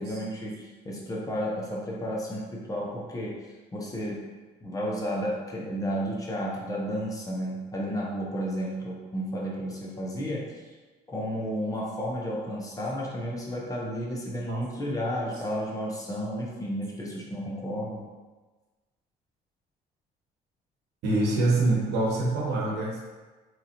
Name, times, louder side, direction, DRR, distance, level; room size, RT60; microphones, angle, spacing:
voice 1, 0.0-4.3 4.6-10.7 11.1-18.1, equal, 20° left, -4 dB, 0.8 m, -32 dB
voice 2, 21.0-23.0, right 2 dB, 80° right, -2 dB, 1.0 m, -25 dB
3.8 x 3.0 x 2.8 m, 1.3 s
cardioid pair, 110°, 17 cm